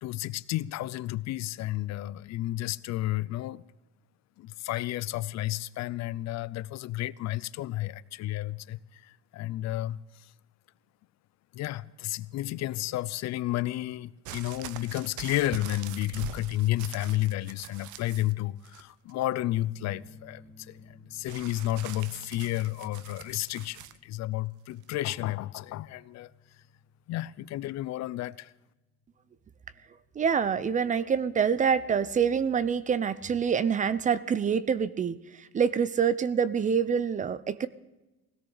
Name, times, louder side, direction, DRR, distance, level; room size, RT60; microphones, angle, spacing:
voice 1, 0.0-3.6 4.4-10.3 11.5-26.3 27.1-28.5, left 15 dB, 65° left, 0.5 m, -32 dB
sound 1, 14.2-18.3 18.6-19.2 21.3-24.0 24.8-24.9, right 12 dB, 80° right, 0.8 m, -44 dB
sound 2, 19.7-30.9, left 2 dB, 5° right, 1.9 m, -56 dB
voice 2, 30.1-37.7, right 7 dB, 25° right, 0.6 m, -26 dB
20.0 x 17.0 x 4.0 m
cardioid pair, 160°, 29 cm